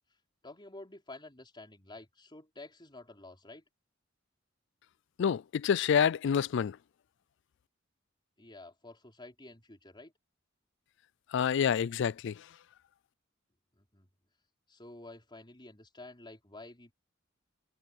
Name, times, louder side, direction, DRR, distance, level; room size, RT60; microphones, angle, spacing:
voice 1, 0.4-3.6 8.4-10.1 13.8-14.1 14.7-16.9, left 2 dB, 25° left, 4.5 m, -50 dB
voice 2, 5.2-6.8 11.3-12.3, left 7 dB, 65° left, 0.4 m, -27 dB
head